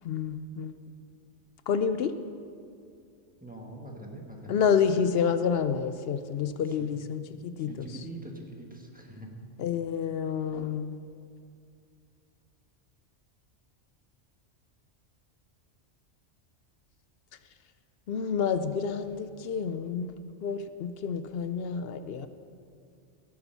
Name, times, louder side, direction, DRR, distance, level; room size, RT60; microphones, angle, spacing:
voice 1, 0.0-0.7 1.7-2.1 4.5-7.9 9.6-11.0 18.1-20.1 20.4-22.3, left 7 dB, 65° left, 11 dB, 0.7 m, -29 dB
voice 2, 3.4-4.6 6.6-6.9 7.6-9.3, right 1 dB, 5° right, 0 dB, 1.3 m, -43 dB
17.0 x 7.0 x 5.7 m, 2.4 s
omnidirectional pair, 1.2 m